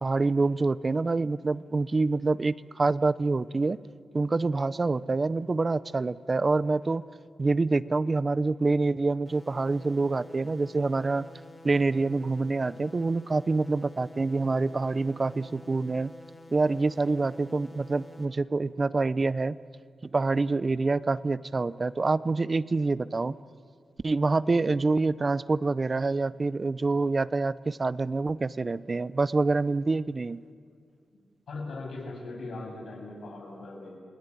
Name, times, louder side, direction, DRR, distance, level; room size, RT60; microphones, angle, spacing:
voice 1, 0.0-3.8 4.1-7.0 7.4-11.3 11.6-16.1 16.5-19.6 20.0-23.4 24.0-30.4, right 3 dB, 30° right, 17 dB, 0.6 m, -26 dB
sound 1, 9.2-18.2, left 1 dB, 20° left, 4.0 m, -50 dB
voice 2, 31.5-34.0, left 2 dB, 70° left, -1 dB, 8.0 m, -39 dB
29.0 x 19.0 x 9.9 m, 2.3 s
wide cardioid pair, 140°, 0 cm